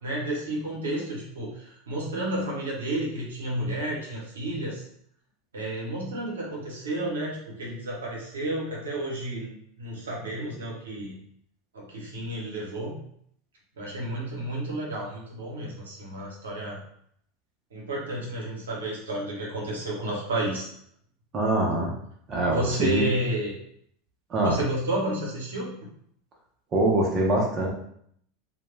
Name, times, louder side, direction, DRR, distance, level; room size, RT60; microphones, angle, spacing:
voice 1, 0.0-4.8 5.5-11.1 11.7-13.0 13.8-16.8 17.7-20.7 22.5-23.6 24.4-25.7, right 1 dB, 85° right, -3 dB, 0.8 m, -31 dB
voice 2, 21.3-21.9 22.3-23.1 24.3-24.5 26.7-27.7, right 2 dB, 35° right, -1 dB, 0.6 m, -24 dB
2.2 x 2.2 x 3.1 m, 0.68 s
hypercardioid pair, 90°, 0 cm